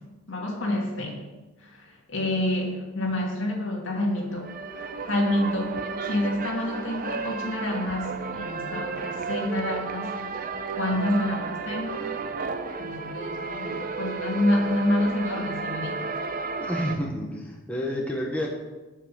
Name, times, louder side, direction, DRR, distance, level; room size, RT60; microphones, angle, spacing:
voice 1, 0.3-1.2 1.6-10.2 10.8-12.1 12.8-16.1, left 1 dB, 65° left, -1 dB, 2.4 m, -28 dB
sound 1, 4.1-17.0, right 4 dB, 45° right, 0.6 m, -33 dB
voice 2, 16.6-18.5, equal, 5° left, -2 dB, 1.2 m, -29 dB
8.1 x 6.0 x 7.5 m, 1.1 s
head